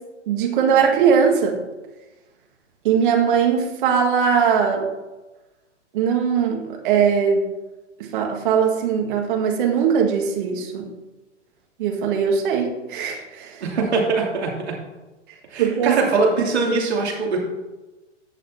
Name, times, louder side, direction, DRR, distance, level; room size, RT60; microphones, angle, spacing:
voice 1, 0.3-1.6 2.8-4.9 5.9-7.5 8.1-10.9 11.8-13.6 15.6-16.0, right 7 dB, 45° right, 2 dB, 1.9 m, -20 dB
voice 2, 13.6-14.5 15.5-17.4, right 4 dB, 60° right, -2 dB, 3.0 m, -21 dB
15.0 x 7.3 x 2.9 m, 1.1 s
figure-of-eight pair, 115°, 36 cm